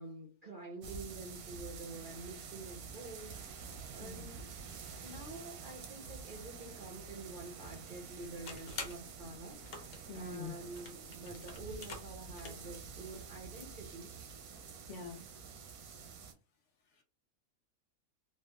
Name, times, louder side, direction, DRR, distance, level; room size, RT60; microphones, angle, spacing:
voice 1, 0.0-3.6 3.9-4.5 5.0-14.1, right 2 dB, 55° right, 0 dB, 0.6 m, -48 dB
sound 1, 0.8-16.3, right 6 dB, 90° right, 1.1 m, -48 dB
sound 2, 8.1-12.8, left 4 dB, 90° left, 1.2 m, -49 dB
voice 2, 10.1-10.5 14.9-15.3, left 4 dB, 65° left, 4 dB, 0.8 m, -44 dB
3.3 x 2.3 x 2.2 m, 0.32 s
omnidirectional pair, 1.5 m